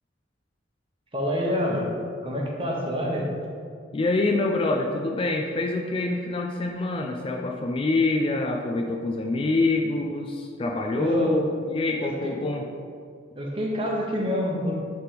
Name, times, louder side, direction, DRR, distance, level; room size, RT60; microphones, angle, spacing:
voice 1, 1.1-1.9 2.2-3.3 10.9-11.4 12.2-12.3 13.3-14.8, equal, 25° right, -2 dB, 0.9 m, -27 dB
voice 2, 3.9-12.6, left 2 dB, 25° left, 2 dB, 0.3 m, -26 dB
6.8 x 3.4 x 4.4 m, 2.2 s
head